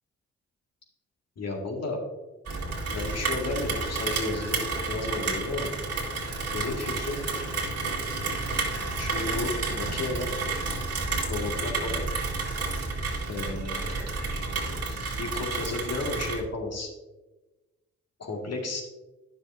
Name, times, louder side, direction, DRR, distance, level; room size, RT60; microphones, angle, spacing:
voice 1, 1.4-2.0 2.9-5.7 6.5-7.2 9.0-10.3 11.3-12.1 13.3-14.1 15.2-16.9 18.2-18.8, left 2 dB, 55° left, 1 dB, 2.1 m, -33 dB
Rain, 2.5-16.4, right 3 dB, 55° right, 2.1 m, -31 dB
9.9 x 6.8 x 2.7 m, 1.1 s
hypercardioid pair, 45°, 31 cm